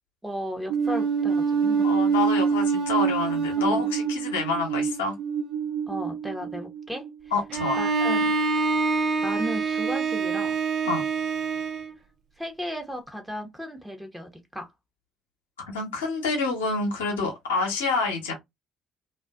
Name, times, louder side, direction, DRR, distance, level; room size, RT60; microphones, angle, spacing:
voice 1, 0.2-1.9 3.6-3.9 5.9-7.1 7.8-8.3 9.2-10.6 12.4-14.7, equal, 5° right, 0.9 m, -35 dB
sound 1, 0.7-7.1, right 6 dB, 70° right, 0.8 m, -25 dB
voice 2, 1.8-5.2 7.3-7.8 10.8-11.0 15.7-18.3, left 3 dB, 75° left, 0.8 m, -27 dB
Bowed string instrument, 7.5-11.9, right 4 dB, 45° right, 0.4 m, -26 dB
2.5 x 2.3 x 2.3 m
figure-of-eight pair, 50°, 0 cm